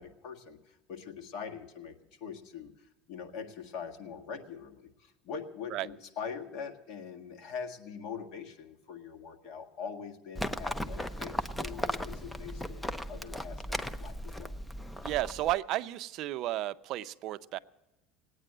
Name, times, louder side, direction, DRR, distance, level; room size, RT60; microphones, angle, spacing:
voice 1, 0.0-14.5, left 6 dB, 55° left, 4 dB, 1.7 m, -43 dB
Livestock farm animals working animals, 10.4-15.5, equal, 5° left, 0.5 m, -37 dB
voice 2, 15.0-17.6, right 15 dB, 50° right, 13 dB, 0.5 m, -33 dB
18.5 x 9.1 x 7.8 m, 0.99 s
cardioid pair, 145°, 0 cm